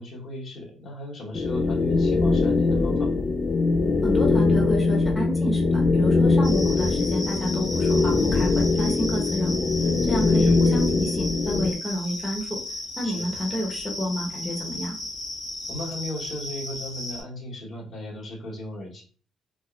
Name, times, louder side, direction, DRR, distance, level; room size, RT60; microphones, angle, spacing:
voice 1, 0.0-3.2 10.3-10.6 13.0-13.3 15.7-19.0, left 1 dB, 55° left, -2 dB, 1.0 m, -36 dB
sound 1, 1.3-11.7, left 3 dB, 40° left, 0.3 m, -22 dB
voice 2, 4.0-12.6 13.0-15.0, equal, 10° left, -2 dB, 0.9 m, -30 dB
sound 2, 6.4-17.2, left 1 dB, 75° left, 1.3 m, -35 dB
3.4 x 2.1 x 2.3 m, 0.40 s
cardioid pair, 90°, 0 cm